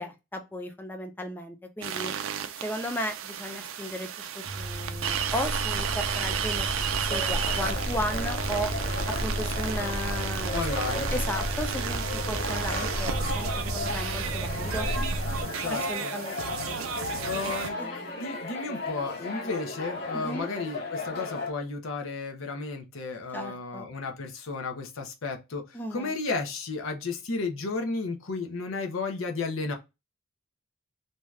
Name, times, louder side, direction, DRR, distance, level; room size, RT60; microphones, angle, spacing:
voice 1, 0.0-2.1 2.6-6.7 6.9-8.7 9.2-10.6 10.9-14.9 15.7-16.4 16.7-16.8 17.8-18.0 20.1-20.5 23.3-23.8 25.7-26.2, equal, 10° left, 0.5 m, -35 dB
sound 1, 1.8-17.7, right 8 dB, 80° right, 0.4 m, -33 dB
sound 2, 4.4-15.4, equal, 45° right, 0.7 m, -33 dB
sound 3, 7.1-21.5, left 3 dB, 50° left, 1.0 m, -36 dB
voice 2, 10.5-11.2 15.6-16.1 17.2-29.7, left 3 dB, 80° left, 0.7 m, -33 dB
2.7 x 2.3 x 3.1 m
head